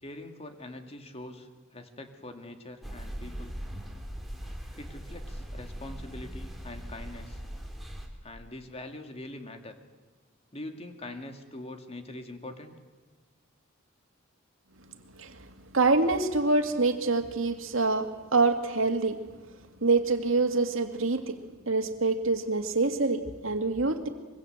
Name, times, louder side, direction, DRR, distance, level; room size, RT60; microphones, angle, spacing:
voice 1, 0.0-3.5 4.8-7.4 8.2-9.7 10.5-12.7, left 1 dB, 30° left, 6 dB, 2.4 m, -43 dB
sound 1, 2.8-8.1, equal, ahead, 3.5 m, -40 dB
voice 2, 15.7-19.2 19.8-21.4 21.7-24.1, right 3 dB, 75° right, 7 dB, 2.2 m, -26 dB
24.0 x 23.0 x 8.0 m, 1.3 s
head